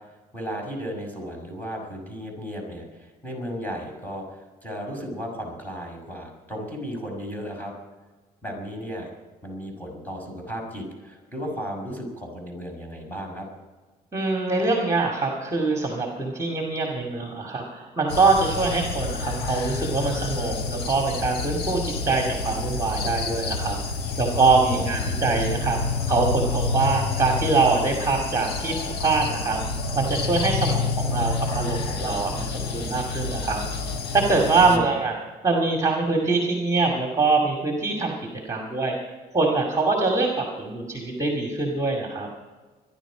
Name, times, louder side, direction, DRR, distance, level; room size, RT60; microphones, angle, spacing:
voice 1, 0.3-7.7 8.4-9.1 9.4-13.5 24.7-25.1 34.6-34.9, equal, 10° left, -1 dB, 6.0 m, -35 dB
voice 2, 14.1-23.7 24.2-25.8 26.1-28.7 29.0-29.6 29.9-33.6 34.1-35.2 35.4-38.1 38.4-38.9 39.3-42.3, right 3 dB, 20° right, 1 dB, 2.4 m, -23 dB
sound 1, 18.1-34.8, left 4 dB, 75° left, 1.8 m, -28 dB
24.0 x 11.0 x 5.1 m, 1.3 s
cardioid pair, 110°, 17 cm